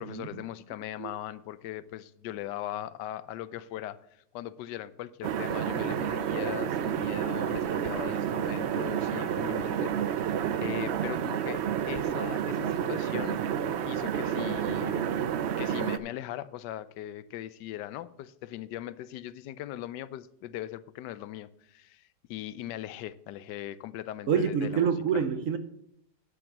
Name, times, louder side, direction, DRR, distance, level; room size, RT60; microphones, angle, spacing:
voice 1, 0.0-4.0 4.3-13.4 13.8-15.1 15.6-24.9, left 13 dB, 80° left, 16 dB, 1.2 m, -39 dB
sound 1, 5.2-16.0, right 9 dB, 80° right, 0.6 m, -30 dB
voice 2, 24.3-25.6, right 6 dB, 60° right, 9 dB, 1.0 m, -27 dB
9.6 x 6.0 x 7.1 m, 0.74 s
omnidirectional pair, 1.8 m